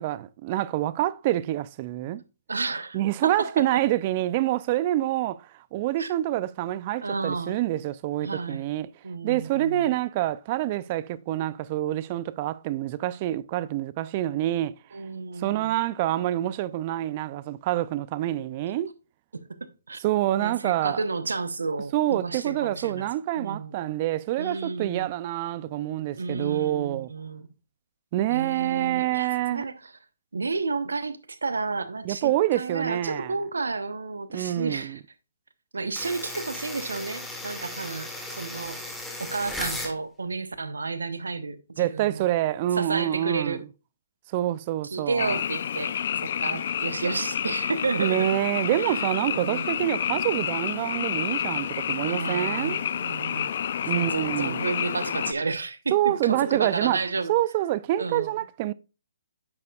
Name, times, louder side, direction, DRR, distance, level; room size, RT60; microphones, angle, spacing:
voice 1, 0.0-2.2 2.9-5.5 5.7-8.9 9.2-14.8 15.4-18.9 20.0-21.0 21.9-27.1 28.1-29.7 32.0-33.3 34.3-35.0 41.8-43.6 44.3-45.4 48.0-52.8 53.9-54.6 55.9-57.0 57.3-58.7, right 14 dB, 35° right, 0.5 m, -27 dB
voice 2, 2.5-3.5 6.0-6.1 7.0-7.5 8.2-8.6 9.0-9.9 14.9-15.7 19.3-19.4 19.9-20.0 20.4-23.1 23.4-23.8 24.4-25.1 26.2-27.5 28.3-29.9 30.3-35.0 35.7-38.1 38.4-38.8 39.2-42.3 42.8-43.6 44.8-48.3 48.8-49.8 52.0-53.5 53.9-57.3 58.0-58.3, right 4 dB, 90° right, 1.0 m, -31 dB
sound 1, 36.0-40.0, left 1 dB, 5° left, 1.6 m, -36 dB
Frog, 45.2-55.3, left 9 dB, 55° left, 0.5 m, -29 dB
9.7 x 6.7 x 2.4 m
hypercardioid pair, 145°, 0 cm